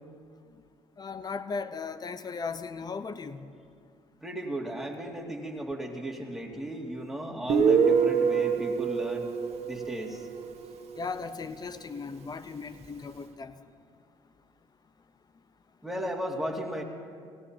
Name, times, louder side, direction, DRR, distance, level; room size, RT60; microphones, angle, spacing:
voice 1, 1.0-3.4 11.0-13.5, left 4 dB, 35° left, 11 dB, 0.8 m, -37 dB
voice 2, 4.2-9.3 9.6-10.3 15.8-16.8, right 1 dB, 5° right, -1 dB, 2.3 m, -35 dB
Guitar, 7.5-11.0, right 6 dB, 65° right, 1.3 m, -26 dB
17.5 x 17.0 x 2.9 m, 2.2 s
hypercardioid pair, 60°, 12 cm